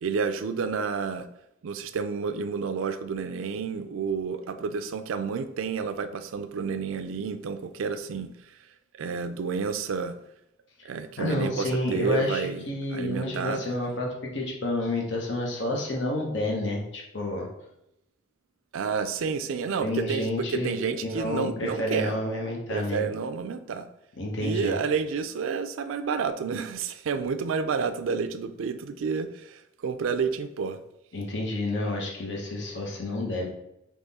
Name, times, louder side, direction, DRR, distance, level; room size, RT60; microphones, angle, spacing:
voice 1, 0.0-1.3 1.6-8.3 8.9-10.2 10.8-13.6 18.7-22.2 22.7-23.9 24.4-30.8, right 5 dB, 85° right, 0.4 m, -30 dB
voice 2, 11.2-17.5 19.8-23.0 24.2-24.8 31.1-33.5, left 1 dB, 65° left, 0.9 m, -30 dB
3.7 x 3.1 x 4.0 m
head